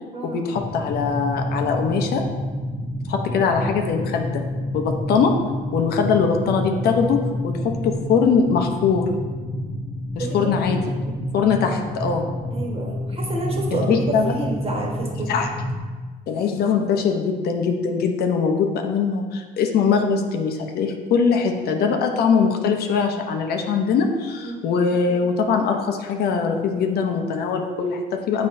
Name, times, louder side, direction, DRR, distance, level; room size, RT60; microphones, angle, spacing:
voice 1, 0.2-2.3 3.1-4.4 4.7-5.3 5.7-9.1 10.2-10.8 11.3-12.2 13.7-14.3 15.3-15.5 16.3-28.5, left 5 dB, 70° left, 4 dB, 0.7 m, -22 dB
sound 1, 0.5-15.8, left 1 dB, 15° left, 1.1 m, -29 dB
voice 2, 10.2-10.5 12.5-15.3 24.4-24.6, right 2 dB, 35° right, -1 dB, 1.4 m, -29 dB
7.7 x 5.2 x 2.6 m, 1.4 s
cardioid pair, 110°, 17 cm